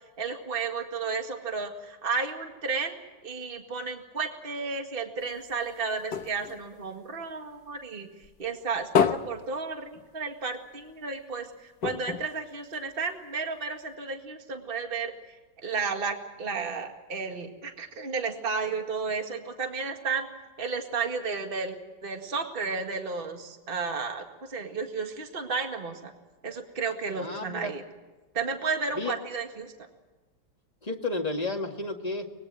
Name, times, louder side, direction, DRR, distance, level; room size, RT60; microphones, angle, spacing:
voice 1, 0.2-8.1 8.4-15.3 15.6-20.3 20.6-21.8 22.0-26.1 26.4-27.8 28.3-29.9, right 4 dB, 30° right, 4 dB, 2.1 m, -33 dB
sound 1, 5.2-7.9 8.2-10.5 10.8-10.9 11.2-11.3 11.8-13.3 13.9-14.0, left 7 dB, 65° left, 1.8 m, -31 dB
voice 2, 27.2-27.7 28.9-29.1 30.8-32.3, left 2 dB, 20° left, 2 dB, 2.1 m, -32 dB
24.5 x 21.0 x 7.6 m, 1.2 s
omnidirectional pair, 2.0 m